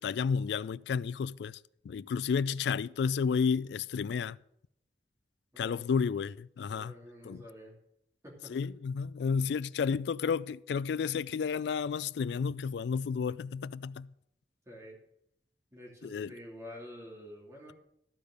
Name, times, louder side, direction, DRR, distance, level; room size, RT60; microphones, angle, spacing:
voice 1, 0.0-1.6 1.8-4.4 5.6-6.9 7.2-7.4 8.5-14.1 16.0-16.3, left 6 dB, 75° left, 0.3 m, -31 dB
voice 2, 5.5-5.9 6.7-7.8 8.2-8.6 14.7-15.0 15.7-17.7, equal, 15° right, 2.6 m, -48 dB
14.0 x 5.1 x 6.4 m
head